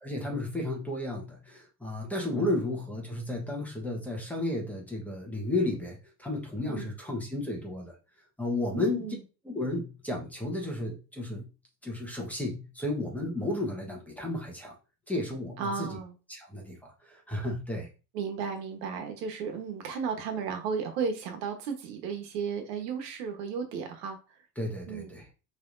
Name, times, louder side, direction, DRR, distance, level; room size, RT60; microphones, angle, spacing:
voice 1, 0.0-7.9 8.4-9.0 9.4-11.5 11.8-14.7 15.1-16.0 16.3-17.9 24.6-25.3, left 2 dB, 5° left, -1 dB, 1.2 m, -33 dB
voice 2, 8.7-9.2 15.6-16.1 18.1-24.2 24.9-25.1, right 6 dB, 85° right, 5 dB, 1.3 m, -34 dB
5.8 x 3.4 x 2.6 m, 0.32 s
supercardioid pair, 135°, 47 cm